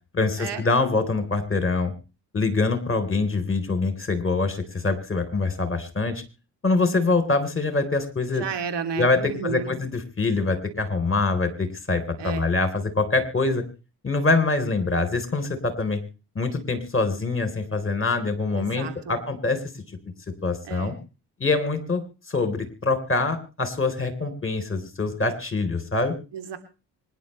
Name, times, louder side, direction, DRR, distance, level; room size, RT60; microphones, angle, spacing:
voice 1, 0.1-1.9 2.3-6.2 6.6-8.4 8.9-13.6 14.0-16.0 16.4-19.6 20.4-20.9 21.4-26.1, left 3 dB, 25° left, 8 dB, 4.0 m, -24 dB
voice 2, 8.3-9.7 12.2-12.5 18.5-19.2 20.6-21.0 26.3-26.6, right 6 dB, 60° right, 8 dB, 3.2 m, -32 dB
25.5 x 11.5 x 3.3 m, 0.34 s
hypercardioid pair, 45°, 48 cm